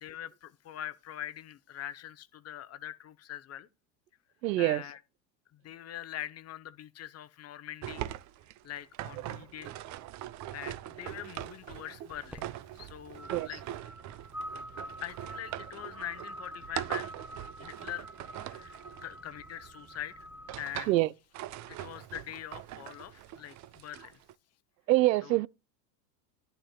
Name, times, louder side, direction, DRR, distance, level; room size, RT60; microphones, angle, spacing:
voice 1, 0.0-3.7 4.6-5.0 5.5-8.1 8.6-9.7 10.5-13.6 15.0-17.1 17.6-18.1 18.4-20.3 20.6-21.0 21.7-24.2 25.2-25.5, left 11 dB, 30° left, 0.9 m, -43 dB
voice 2, 4.4-4.8 13.3-13.5 20.9-21.1 24.9-25.5, right 17 dB, 80° right, 0.6 m, -25 dB
sound 1, 7.8-19.7 20.2-21.0 21.3-24.3, right 13 dB, 35° right, 0.6 m, -42 dB
sound 2, 12.1-20.6, right 1 dB, 5° right, 1.0 m, -47 dB
11.0 x 11.0 x 2.2 m
hypercardioid pair, 95°, 49 cm